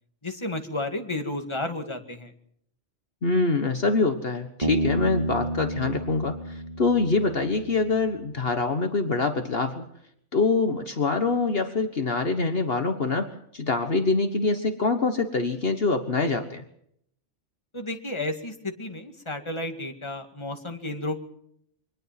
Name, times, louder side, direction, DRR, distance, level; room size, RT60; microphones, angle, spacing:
voice 1, 0.2-2.3 17.7-21.2, left 2 dB, 25° left, 5 dB, 2.3 m, -32 dB
voice 2, 3.2-9.9 10.3-16.6, left 3 dB, 55° left, 7 dB, 1.6 m, -25 dB
Bass guitar, 4.6-8.1, right 1 dB, 30° right, 3.2 m, -31 dB
24.0 x 19.5 x 6.0 m, 0.70 s
omnidirectional pair, 1.2 m